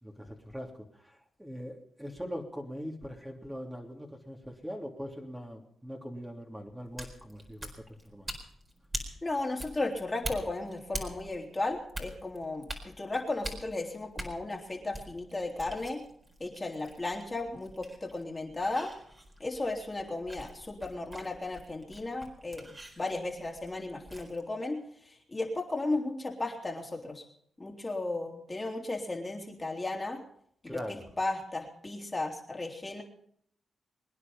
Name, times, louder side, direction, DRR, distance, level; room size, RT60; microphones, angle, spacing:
voice 1, 0.0-8.3 30.6-31.0, equal, 10° right, 0 dB, 3.2 m, -42 dB
sound 1, 6.8-24.4, right 1 dB, 25° right, 4.3 m, -45 dB
voice 2, 9.2-16.0 16.4-18.9 19.4-24.8 25.0-27.2 27.6-30.2 30.6-33.0, left 2 dB, 25° left, 1 dB, 3.5 m, -35 dB
24.5 x 10.0 x 5.5 m, 0.68 s
supercardioid pair, 50°, 0 cm